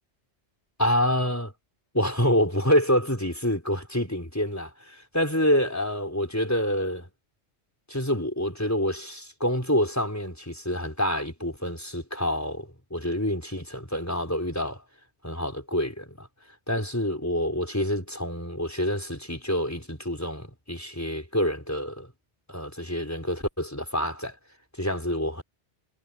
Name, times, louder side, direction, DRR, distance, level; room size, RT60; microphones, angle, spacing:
voice 1, 0.8-1.5 1.9-7.1 7.9-14.8 15.2-16.3 16.7-22.1 22.5-24.4 24.8-25.4, equal, 15° left, 4.3 m, -27 dB
omnidirectional pair, 1.1 m